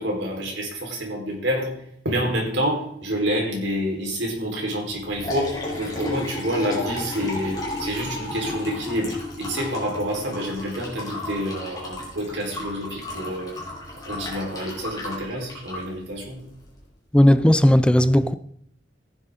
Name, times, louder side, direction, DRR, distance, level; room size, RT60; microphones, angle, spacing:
voice 1, 0.0-1.7 2.0-13.5 13.9-16.4, equal, 75° right, 4.1 m, -28 dB
Liquid, 4.9-16.8, left 2 dB, 20° left, 4.0 m, -33 dB
voice 2, 17.1-18.3, left 1 dB, 5° left, 0.4 m, -16 dB
15.0 x 10.0 x 3.7 m
head